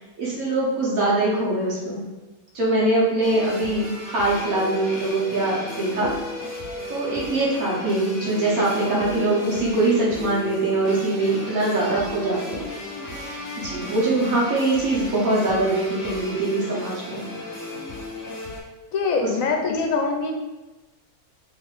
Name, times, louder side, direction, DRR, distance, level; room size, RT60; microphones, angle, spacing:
voice 1, 0.2-2.0 2.5-6.1 6.9-12.6 13.6-17.2 19.2-19.3, right 2 dB, 80° right, -5 dB, 1.6 m, -23 dB
sound 1, 3.2-18.6, left 2 dB, 45° left, 1.1 m, -35 dB
voice 2, 18.9-20.3, left 4 dB, 75° left, 3 dB, 0.9 m, -23 dB
4.3 x 3.4 x 2.4 m, 1.1 s
omnidirectional pair, 1.5 m